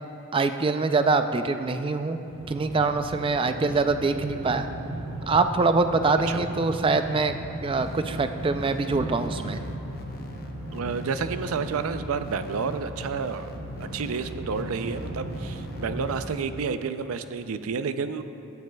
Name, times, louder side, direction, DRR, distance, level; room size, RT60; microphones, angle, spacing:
voice 1, 0.3-2.2 2.5-4.7 5.3-9.6, right 3 dB, 25° right, 8 dB, 0.3 m, -24 dB
sound 1, 2.3-16.2, right 1 dB, 65° right, 0.8 m, -37 dB
sound 2, 7.8-16.4, left 2 dB, 45° left, 0.7 m, -42 dB
voice 2, 10.7-13.5 13.8-18.2, right 5 dB, 85° right, 10 dB, 0.4 m, -30 dB
16.0 x 9.3 x 2.3 m, 2.8 s
head